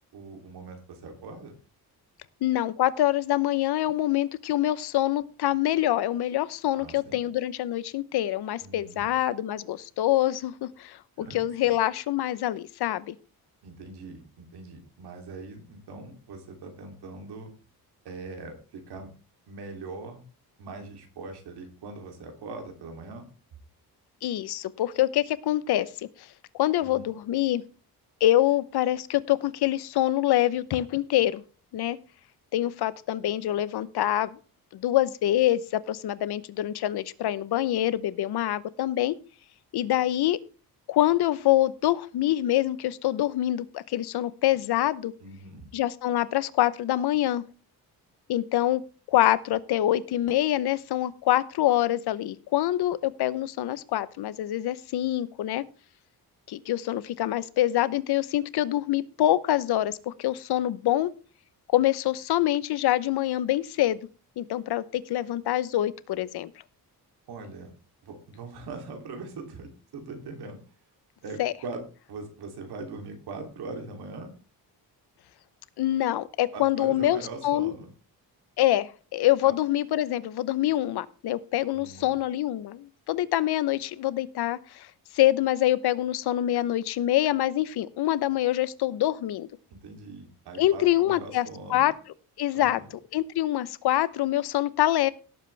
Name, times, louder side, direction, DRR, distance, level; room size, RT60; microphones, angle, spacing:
voice 1, 0.1-1.5 6.8-7.2 8.6-9.1 11.2-11.8 13.6-17.5 18.0-19.1 19.5-20.2 20.6-23.2 26.8-27.1 45.2-45.7 67.3-67.7 68.0-70.6 71.2-71.8 72.1-74.3 76.5-77.9 79.4-79.5 81.7-82.1 89.7-91.9 92.5-92.9, right 3 dB, 85° right, 4 dB, 3.2 m, -41 dB
voice 2, 2.4-13.1 24.2-26.3 26.5-27.6 28.2-31.4 31.7-32.0 32.5-34.4 34.7-39.1 39.7-40.4 40.9-45.1 45.7-47.4 48.3-48.8 49.1-55.6 56.5-61.1 61.7-64.0 64.4-66.5 71.4-71.5 75.8-77.2 77.4-77.7 78.6-84.9 85.1-89.5 90.6-91.9 92.4-92.8 93.1-95.1, left 13 dB, 85° left, 16 dB, 0.9 m, -25 dB
17.5 x 7.8 x 3.4 m, 0.36 s
cardioid pair, 130°, 38 cm